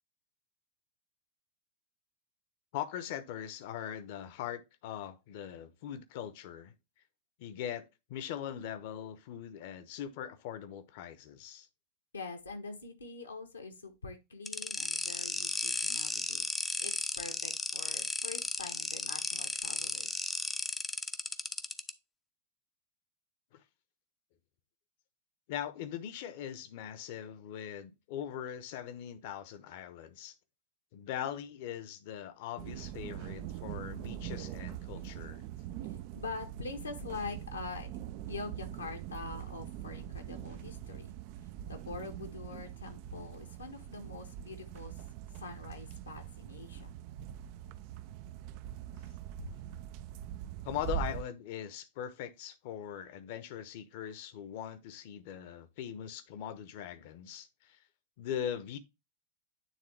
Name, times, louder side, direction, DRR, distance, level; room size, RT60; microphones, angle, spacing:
voice 1, 2.7-6.7 7.4-11.7 23.5-23.6 25.5-30.3 30.9-35.4 48.9-49.0 50.6-57.8 58.2-58.8, left 10 dB, 50° left, 0.9 m, -41 dB
voice 2, 12.1-16.4 16.8-20.1 36.1-37.9 38.3-41.2 41.6-44.9 45.4-46.9 49.4-49.5, left 4 dB, 75° left, 1.3 m, -44 dB
sound 1, 14.5-21.9, left 3 dB, 10° left, 0.6 m, -35 dB
sound 2, 32.6-51.2, right 11 dB, 45° right, 0.4 m, -43 dB
9.2 x 3.6 x 3.3 m
figure-of-eight pair, 90°, 0 cm